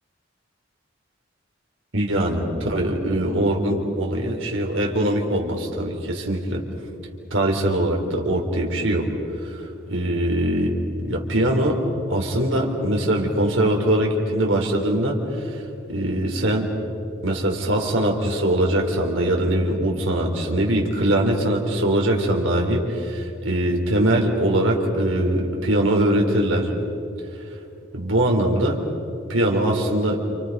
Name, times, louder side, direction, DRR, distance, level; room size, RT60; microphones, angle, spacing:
voice 1, 1.9-6.6 7.3-9.1 9.4-9.6 9.9-11.8 12.1-15.6 15.9-16.7 17.2-26.7 27.9-28.8 29.3-30.2, right 1 dB, 85° right, 0 dB, 3.7 m, -22 dB
29.5 x 29.0 x 5.4 m, 2.8 s
head